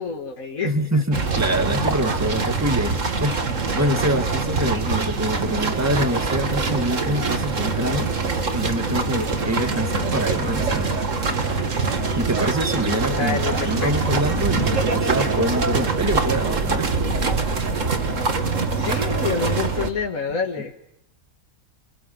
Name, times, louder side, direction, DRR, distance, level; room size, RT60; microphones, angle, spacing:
voice 1, 0.0-1.0 2.6-3.0 13.2-14.2 18.8-20.8, left 5 dB, 75° left, 2 dB, 2.4 m, -28 dB
voice 2, 0.6-8.1 8.5-11.0 11.2-11.3 12.1-13.4 13.7-16.9, right 1 dB, 10° right, 6 dB, 1.9 m, -25 dB
sound 1, 1.1-19.9, right 4 dB, 65° right, 2.3 m, -24 dB
29.0 x 27.5 x 5.4 m, 0.76 s
omnidirectional pair, 1.4 m